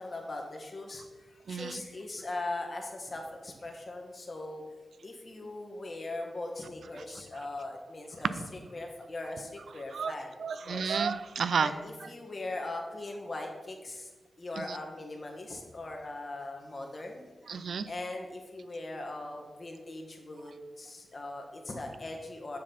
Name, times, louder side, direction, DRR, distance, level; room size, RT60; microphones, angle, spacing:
voice 1, 0.0-4.6 5.0-8.3 8.7-11.0 11.6-14.1 14.4-17.2 17.9-22.6, left 2 dB, 45° left, 1 dB, 1.4 m, -40 dB
voice 2, 1.5-1.8 9.9-10.1 10.4-11.7 14.7-14.8 17.5-17.9, right 6 dB, 80° right, 13 dB, 0.3 m, -31 dB
7.4 x 4.0 x 6.0 m, 1.3 s
cardioid pair, 75°, 0 cm